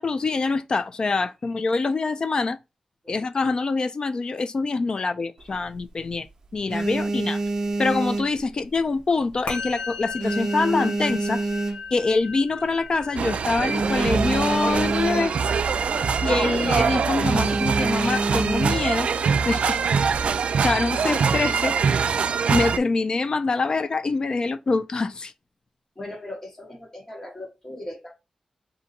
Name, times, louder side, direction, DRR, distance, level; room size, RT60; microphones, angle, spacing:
voice 1, 0.0-2.6 3.1-6.3 6.5-7.4 7.8-11.5 11.9-15.3 16.2-19.1 19.5-19.8 20.6-21.7 22.5-25.3, left 3 dB, 40° left, 0.4 m, -25 dB
sound 1, 5.4-6.1 6.5-9.0 9.3-9.7 10.0-12.2 12.7-12.8 12.9-13.1 13.4-15.6 15.9-16.2 16.5-16.7 17.2-19.0 19.7-20.3, right 2 dB, 30° right, 0.8 m, -27 dB
Musical instrument, 9.5-19.0, left 4 dB, 75° left, 0.9 m, -39 dB
sound 2, 13.2-22.8, right 6 dB, 75° right, 0.3 m, -23 dB
voice 2, 26.0-28.1, left 1 dB, 25° left, 1.1 m, -39 dB
3.9 x 2.7 x 4.1 m
wide cardioid pair, 175°, 2 cm